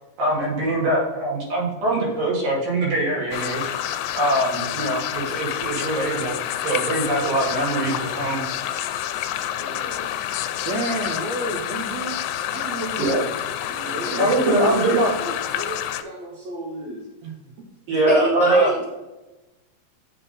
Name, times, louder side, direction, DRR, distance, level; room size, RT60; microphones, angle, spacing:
voice 1, 0.2-3.8 4.1-8.4 13.0-13.3 14.2-15.1 17.9-18.7, right 1 dB, 85° right, -5 dB, 4.3 m, -22 dB
sound 1, 3.3-16.0, left 11 dB, 85° left, 2.3 m, -28 dB
voice 2, 9.5-10.1 10.6-12.2 12.4-13.2 13.6-17.7, right 1 dB, 70° right, 1 dB, 1.8 m, -31 dB
voice 3, 18.1-18.8, right 1 dB, 65° left, -4 dB, 1.0 m, -23 dB
8.2 x 3.7 x 5.5 m, 1.1 s
omnidirectional pair, 4.0 m